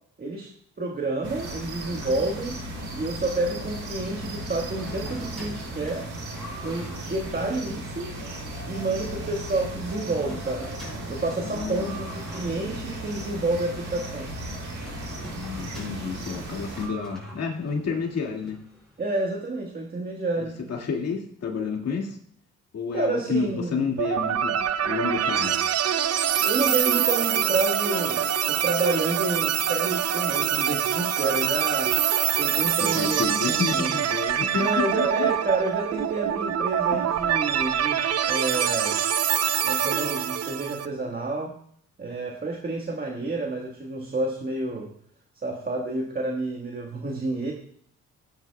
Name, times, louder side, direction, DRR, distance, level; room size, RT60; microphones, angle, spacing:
voice 1, 0.2-0.5 0.8-2.6 2.9-6.1 6.6-8.2 8.6-10.7 11.1-14.3 19.0-20.6 22.9-23.9 26.4-32.0 32.4-33.9 34.6-38.0 38.3-39.0 39.6-41.6 42.0-44.9 45.4-47.5, right 2 dB, 30° right, 1 dB, 1.5 m, -29 dB
sound 1, 1.2-16.9, right 1 dB, 85° right, 3.0 m, -36 dB
sound 2, 4.5-19.2, equal, ahead, 5.2 m, -45 dB
voice 2, 11.4-12.0 15.3-18.6 20.4-22.2 22.7-24.5 24.8-25.6 32.6-34.7 35.0-35.3 36.9-37.0, left 5 dB, 55° left, 0 dB, 2.1 m, -30 dB
sound 3, 24.0-40.9, right 9 dB, 55° right, 0.6 m, -25 dB
16.5 x 9.7 x 2.3 m, 0.64 s
cardioid pair, 90°, 30 cm